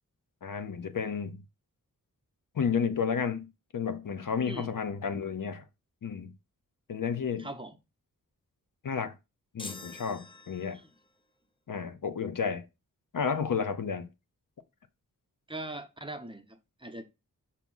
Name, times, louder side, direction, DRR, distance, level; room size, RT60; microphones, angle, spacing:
voice 1, 0.4-1.4 2.5-5.6 6.0-6.3 6.9-7.5 8.8-9.1 9.5-10.8 11.7-12.6 13.1-14.1, left 6 dB, 70° left, 0.7 m, -32 dB
voice 2, 7.4-7.8 10.7-10.9 15.5-17.0, right 2 dB, 15° right, 0.8 m, -41 dB
sound 1, 9.6-11.1, left 2 dB, 15° left, 0.6 m, -45 dB
6.0 x 2.8 x 5.4 m
wide cardioid pair, 105°, 34 cm